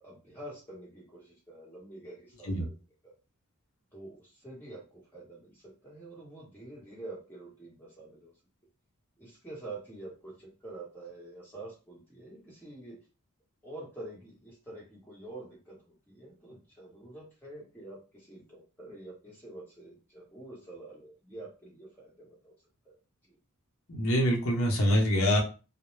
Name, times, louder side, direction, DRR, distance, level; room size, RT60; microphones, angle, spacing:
voice 1, 0.0-2.7 3.0-3.1 3.9-8.3 9.2-13.0 13.6-22.5 22.8-23.0, right 2 dB, 10° left, -5 dB, 1.0 m, -47 dB
voice 2, 23.9-25.4, equal, 65° left, 0 dB, 0.8 m, -25 dB
2.2 x 2.1 x 3.1 m, 0.32 s
head